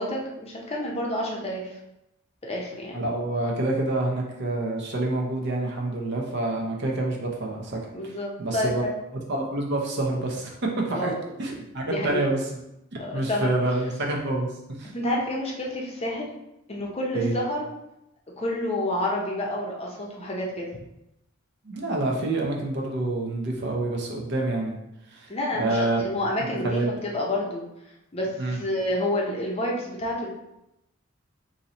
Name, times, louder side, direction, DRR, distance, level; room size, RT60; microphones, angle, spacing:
voice 1, 0.0-1.8 2.4-3.0 7.9-8.9 10.9-11.4 11.9-12.3 12.9-13.6 14.9-16.3 16.7-17.7 18.4-20.8 25.3-27.6 28.1-30.3, left 1 dB, 30° left, -2 dB, 0.7 m, -29 dB
voice 2, 2.9-8.1 8.4-8.8 9.3-11.1 11.4-12.6 13.1-14.5 14.8-14.9 17.1-17.3 21.6-24.8 25.1-25.3 25.6-26.0 26.6-26.9 28.4-28.6, right 2 dB, 55° right, -1 dB, 0.7 m, -27 dB
3.0 x 2.7 x 4.0 m, 0.87 s
head